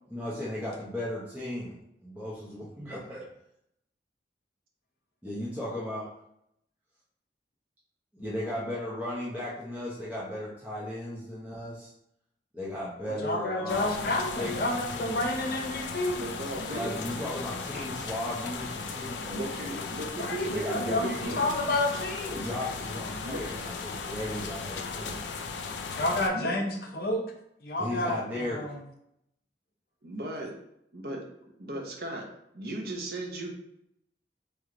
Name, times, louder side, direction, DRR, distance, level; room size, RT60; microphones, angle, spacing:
voice 1, 0.1-1.8 2.0-3.2 5.2-6.1 8.1-11.9 12.5-15.2 16.6-19.8 20.4-21.7 22.3-25.2 27.8-28.7, left 1 dB, 10° right, -8 dB, 0.8 m, -36 dB
voice 2, 13.2-16.2 20.2-21.1 21.4-22.4 26.0-27.2 27.6-28.8, left 1 dB, 55° left, 1 dB, 0.7 m, -30 dB
sound 1, 13.7-26.3, left 4 dB, 90° left, 0.4 m, -37 dB
voice 3, 16.2-17.2 19.3-21.5 23.2-23.4 26.3-26.6 30.0-30.6 30.9-31.2 31.6-32.3 32.5-33.5, right 2 dB, 60° right, 0 dB, 0.8 m, -36 dB
3.2 x 3.1 x 3.7 m, 0.77 s
head